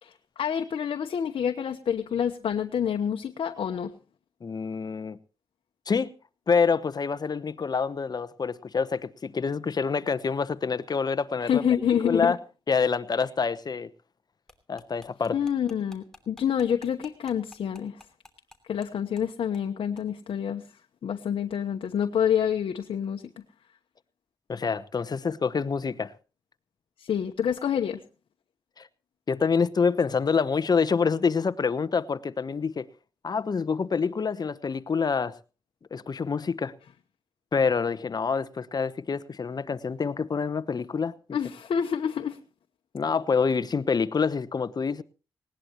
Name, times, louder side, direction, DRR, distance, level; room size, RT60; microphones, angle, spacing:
voice 1, 0.0-3.9 11.4-12.3 15.3-18.0 18.6-23.4 27.0-28.0 41.3-42.4, left 8 dB, 80° left, 1.0 m, -28 dB
voice 2, 4.4-5.2 5.9-6.1 6.5-11.6 12.0-12.4 12.7-13.9 14.7-15.4 24.5-26.1 28.8-28.9 29.3-32.9 33.2-35.3 35.9-36.7 37.5-41.1 42.9-45.0, left 5 dB, 45° left, 1.0 m, -26 dB
sound 1, 14.5-18.9 19.2-19.3 19.5-19.7 20.0-20.1, left 1 dB, 5° left, 3.0 m, -51 dB
19.5 x 18.5 x 3.0 m
cardioid pair, 85°, 9 cm